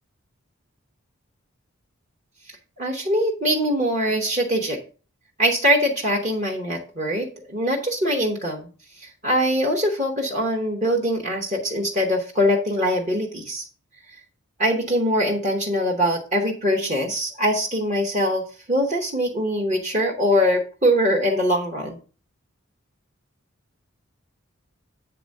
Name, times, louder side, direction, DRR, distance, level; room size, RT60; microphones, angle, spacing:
voice 1, 2.8-4.8 5.4-8.7 9.0-13.6 14.6-18.4 18.7-22.0, equal, 35° right, -2 dB, 1.2 m, -22 dB
9.1 x 3.5 x 6.5 m, 0.37 s
head